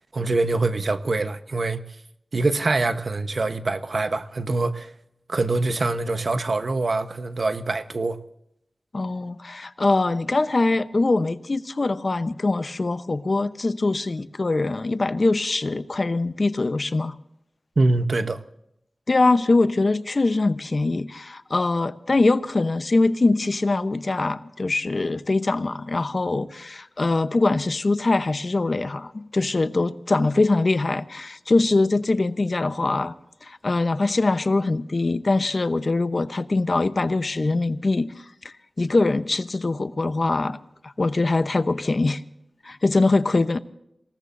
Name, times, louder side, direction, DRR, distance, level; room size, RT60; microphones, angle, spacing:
voice 1, 0.1-1.8 2.3-4.9 5.3-8.2 17.8-18.4, right 3 dB, 60° right, 1.0 m, -24 dB
voice 2, 8.9-17.2 19.1-33.1 33.4-40.6 40.8-42.2 42.6-43.6, left 3 dB, 50° left, 0.8 m, -23 dB
27.0 x 18.0 x 2.6 m
wide cardioid pair, 60°, 0 cm